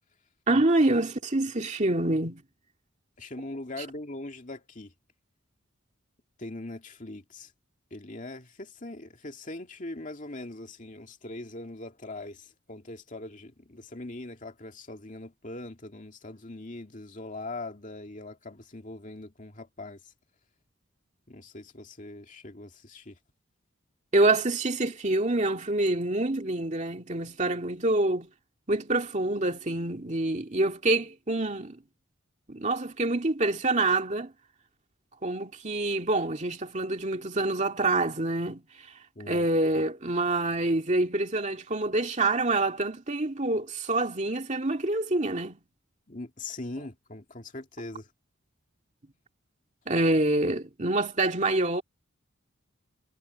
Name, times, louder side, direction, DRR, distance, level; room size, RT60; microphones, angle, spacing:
voice 1, 0.5-2.4 24.1-28.3 28.7-31.8 32.5-34.3 35.2-38.6 39.3-45.6 49.9-51.8, right 2 dB, 35° right, 2.2 m, -26 dB
voice 2, 3.2-4.9 6.4-7.5 7.9-20.1 21.3-23.2 39.2-39.5 46.1-48.1, left 2 dB, 40° left, 2.4 m, -41 dB
head